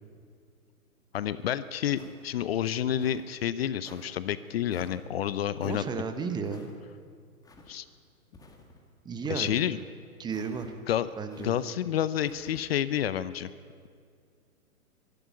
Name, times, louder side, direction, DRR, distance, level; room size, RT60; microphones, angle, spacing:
voice 1, 1.1-5.8 7.7-7.8 9.3-9.8 10.9-11.1 11.4-13.5, left 10 dB, 40° left, 15 dB, 0.7 m, -29 dB
sound 1, 1.9-2.4 2.9-3.3 3.8-4.1 4.7-5.0 5.6-5.8 6.4-6.7 7.4-7.7 8.3-8.8 9.4-9.7 10.3-10.7 11.3-11.6 12.3-12.6, left 3 dB, 10° left, 1.8 m, -53 dB
voice 2, 5.6-6.7 9.0-9.6 10.2-10.7 11.2-11.6, right 5 dB, 10° right, 8 dB, 1.0 m, -33 dB
23.5 x 12.0 x 9.4 m, 2.2 s
hypercardioid pair, 130°, 45 cm